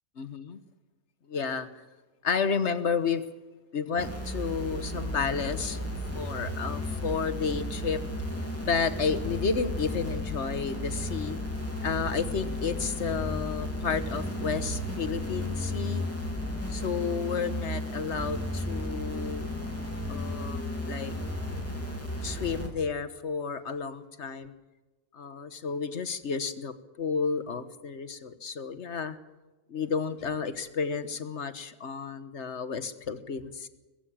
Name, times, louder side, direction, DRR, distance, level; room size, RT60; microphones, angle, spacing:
voice 1, 0.2-0.6 1.3-1.7 2.2-3.2 3.7-5.8 6.1-8.0 8.6-11.4 11.8-16.0 16.7-19.5 20.1-21.1 22.2-24.5 25.1-29.2 29.7-33.7, left 5 dB, 55° left, 11 dB, 1.5 m, -31 dB
sound 1, 4.0-22.7, left 1 dB, 10° left, 3.1 m, -34 dB
sound 2, 4.6-22.1, left 1 dB, 80° right, 1.5 m, -42 dB
21.0 x 15.0 x 8.8 m, 1.1 s
omnidirectional pair, 1.4 m